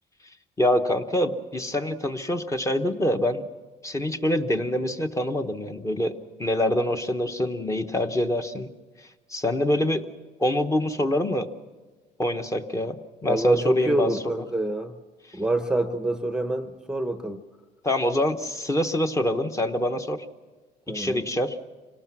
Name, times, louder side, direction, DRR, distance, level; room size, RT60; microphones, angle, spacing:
voice 1, 0.6-3.5 3.8-8.7 9.3-10.0 10.4-11.5 12.2-13.0 13.2-14.1 17.8-20.2 20.9-21.6, left 1 dB, 15° left, 6 dB, 1.0 m, -25 dB
voice 2, 13.3-14.9 15.3-17.4 20.9-21.2, right 1 dB, 5° right, 8 dB, 0.8 m, -26 dB
25.5 x 18.5 x 6.1 m, 1.3 s
cardioid pair, 110°, 17 cm